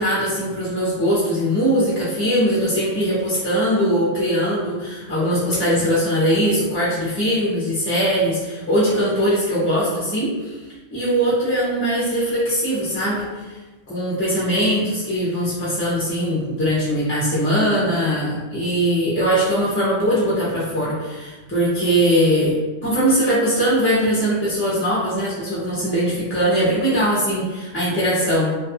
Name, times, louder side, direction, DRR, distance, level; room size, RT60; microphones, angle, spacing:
voice 1, 0.0-10.6 10.9-13.6 13.9-28.6, equal, 20° left, -8 dB, 0.4 m, -21 dB
2.4 x 2.3 x 2.6 m, 1.2 s
omnidirectional pair, 1.2 m